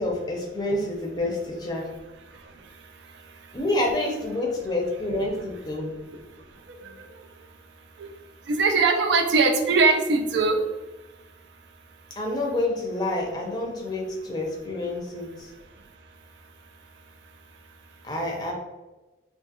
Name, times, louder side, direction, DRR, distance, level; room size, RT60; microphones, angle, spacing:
voice 1, 0.0-1.9 3.5-5.9 6.8-7.0 12.2-15.5 18.0-18.5, left 1 dB, 20° left, -1 dB, 0.5 m, -28 dB
voice 2, 8.5-10.6, right 4 dB, 75° right, 6 dB, 0.4 m, -20 dB
2.4 x 2.3 x 2.7 m, 1.1 s
head